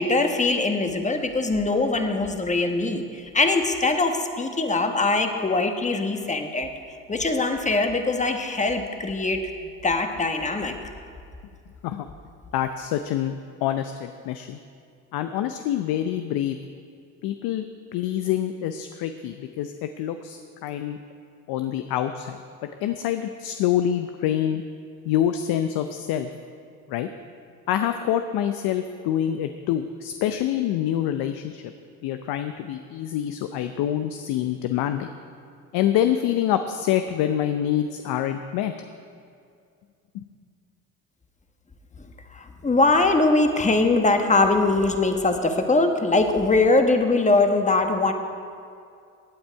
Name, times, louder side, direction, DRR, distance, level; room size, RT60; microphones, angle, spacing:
voice 1, 0.0-6.7 7.1-9.4 9.8-10.7 42.3-48.1, left 3 dB, 20° left, 5 dB, 1.3 m, -22 dB
voice 2, 12.5-13.3 13.6-14.6 15.1-16.6 17.2-17.6 17.9-21.0 21.5-24.6 25.0-26.3 26.9-27.1 27.7-31.6 32.0-35.1 35.7-38.7 40.1-40.2, left 11 dB, 65° left, 8 dB, 0.7 m, -26 dB
16.5 x 8.8 x 4.6 m, 2.4 s
supercardioid pair, 70°, 40 cm